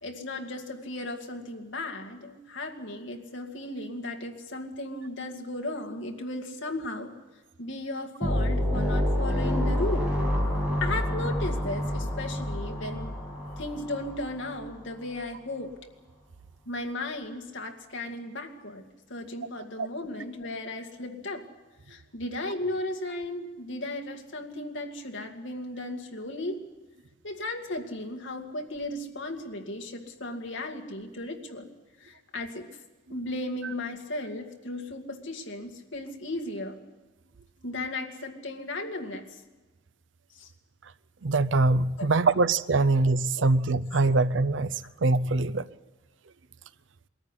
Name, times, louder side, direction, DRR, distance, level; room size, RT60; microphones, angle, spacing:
voice 1, 0.0-7.1 7.6-10.1 10.8-13.2 13.6-15.7 16.7-18.8 19.1-21.4 21.9-26.6 27.2-31.7 32.0-32.8 33.1-36.8 37.6-39.4 40.3-40.5 42.0-42.3 42.8-42.9 43.4-43.5, left 2 dB, 75° left, 2.2 m, -35 dB
sound 1, 8.2-14.7, equal, 5° right, 6.2 m, -28 dB
voice 2, 41.2-45.7, right 3 dB, 75° right, 0.6 m, -23 dB
22.0 x 14.0 x 9.9 m
head